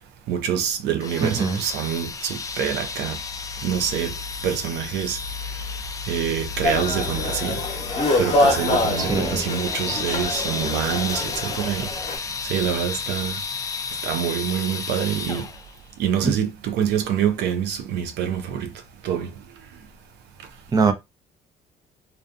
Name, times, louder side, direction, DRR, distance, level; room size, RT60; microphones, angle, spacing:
voice 1, 0.3-3.2 3.6-4.2 4.4-5.2 6.1-7.6 8.2-11.9 12.4-13.4 14.0-15.5 16.0-18.7 19.0-19.3, right 8 dB, 80° right, 0.5 m, -26 dB
sound 1, 1.0-15.8, left 5 dB, 20° left, 0.3 m, -32 dB
voice 2, 1.2-1.6 9.0-9.4 16.2-16.3 20.7-20.9, right 4 dB, 20° right, 0.6 m, -21 dB
sound 2, 6.6-12.2, left 2 dB, 35° left, 0.8 m, -25 dB
2.6 x 2.3 x 2.4 m
cardioid pair, 110°, 17 cm